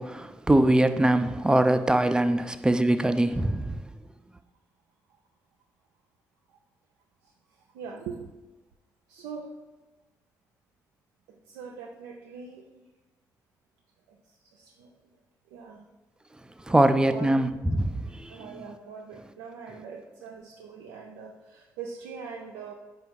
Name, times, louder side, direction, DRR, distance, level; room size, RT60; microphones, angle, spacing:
voice 1, 0.0-3.8 16.7-18.4, right 1 dB, 10° right, 0.3 m, -23 dB
voice 2, 7.7-8.3 9.1-9.6 11.3-12.6 14.1-14.2 14.5-14.9 15.5-15.9 16.7-17.3 18.0-22.7, right 5 dB, 90° right, 0.3 m, -42 dB
4.8 x 2.3 x 4.6 m
hypercardioid pair, 45°, 8 cm